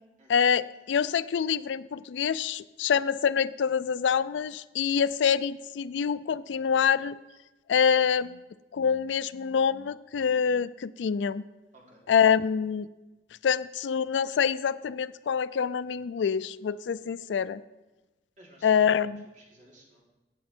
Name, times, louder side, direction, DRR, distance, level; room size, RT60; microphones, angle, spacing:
voice 1, 0.3-7.2 7.7-8.4 8.7-11.4 12.1-12.9 13.4-17.6 18.6-19.2, left 7 dB, 85° left, 17 dB, 0.4 m, -26 dB
voice 2, 11.7-12.1 18.4-20.0, right 1 dB, 45° right, -2 dB, 3.1 m, -56 dB
17.0 x 7.0 x 4.4 m, 1.1 s
head